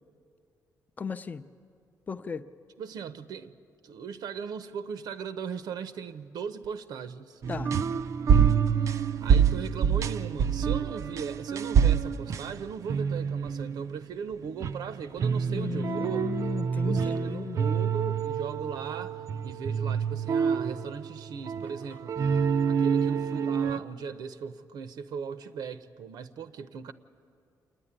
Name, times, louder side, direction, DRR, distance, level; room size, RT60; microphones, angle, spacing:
voice 1, 1.0-1.4 2.1-2.5 7.5-7.7 15.5-17.6, left 5 dB, 25° left, 0.5 m, -35 dB
voice 2, 2.8-3.5 3.8-7.4 8.8-16.3 16.8-22.2 22.6-26.9, right 6 dB, 75° right, 0.8 m, -38 dB
sound 1, 7.4-14.0 14.4-23.8, right 7 dB, 50° right, 0.4 m, -27 dB
27.5 x 9.9 x 10.0 m
wide cardioid pair, 165°, 7 cm